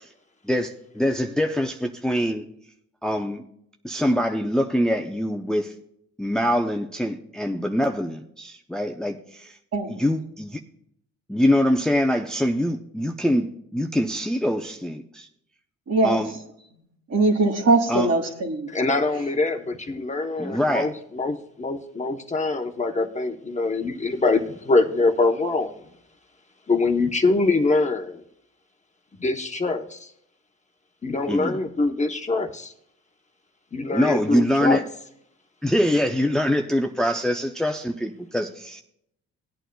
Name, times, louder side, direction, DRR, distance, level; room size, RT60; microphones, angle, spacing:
voice 1, 0.4-2.4 3.0-3.4 3.8-5.7 6.2-9.6 9.9-10.6 11.3-15.3 16.0-16.3 17.9-18.1 20.4-20.9 31.3-31.6 33.9-34.8 35.6-38.8, equal, ahead, 4 dB, 0.6 m, -24 dB
voice 2, 15.9-16.2 17.1-18.7, right 3 dB, 55° right, 2 dB, 2.4 m, -21 dB
voice 3, 18.7-25.7 26.7-28.2 29.2-30.1 31.0-32.7 33.7-34.8, left 3 dB, 25° left, 3 dB, 0.9 m, -24 dB
18.0 x 9.0 x 2.3 m, 0.73 s
cardioid pair, 90°, 30 cm